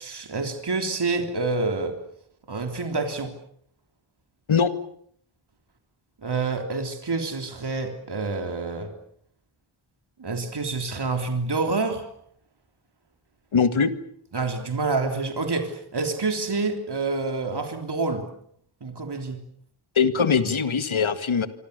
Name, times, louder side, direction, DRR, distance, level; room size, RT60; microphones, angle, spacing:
voice 1, 0.0-2.0 2.5-3.3 6.2-8.9 10.2-12.1 14.3-18.3 18.8-19.4, right 3 dB, 55° right, 5 dB, 3.6 m, -27 dB
voice 2, 13.5-13.9 20.0-21.5, left 6 dB, 70° left, 10 dB, 2.1 m, -21 dB
26.0 x 26.0 x 6.9 m, 0.65 s
wide cardioid pair, 100°, 49 cm